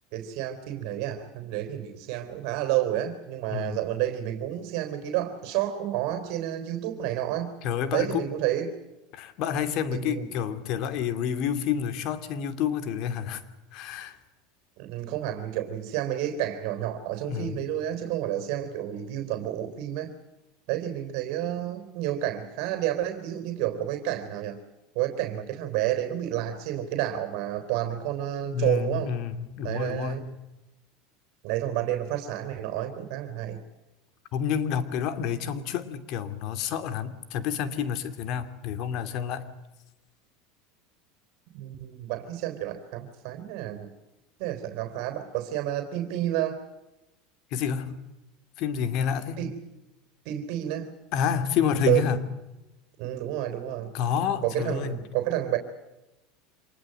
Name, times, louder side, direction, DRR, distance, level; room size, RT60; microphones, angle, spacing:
voice 1, 0.1-7.5 7.9-8.7 9.9-10.3 14.8-20.1 20.7-24.6 24.9-29.1 29.6-30.2 31.4-33.6 41.5-43.9 44.4-46.6 49.4-49.5 50.3-50.9 51.9-52.0 53.0-53.9 54.4-55.6, right 12 dB, 65° right, 7 dB, 3.6 m, -30 dB
voice 2, 7.6-8.3 9.1-13.4 13.7-14.2 17.3-17.6 28.5-30.3 34.3-39.5 47.5-48.0 48.6-49.5 51.1-52.2 53.9-55.0, left 8 dB, 55° left, 11 dB, 2.6 m, -29 dB
26.5 x 20.5 x 7.8 m, 0.97 s
supercardioid pair, 120°, 0 cm